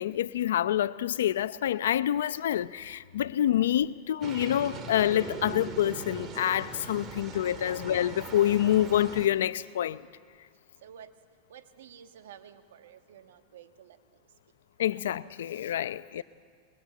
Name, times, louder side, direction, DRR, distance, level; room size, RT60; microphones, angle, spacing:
voice 1, 0.0-10.0 14.8-16.2, left 11 dB, 90° left, 0.6 m, -27 dB
sound 1, 4.2-9.3, right 5 dB, 30° right, 2.0 m, -40 dB
voice 2, 7.6-7.9 10.8-11.1 11.5-14.0 14.9-15.0, right 9 dB, 85° right, 1.5 m, -51 dB
22.5 x 22.0 x 8.4 m
supercardioid pair, 125°, 0 cm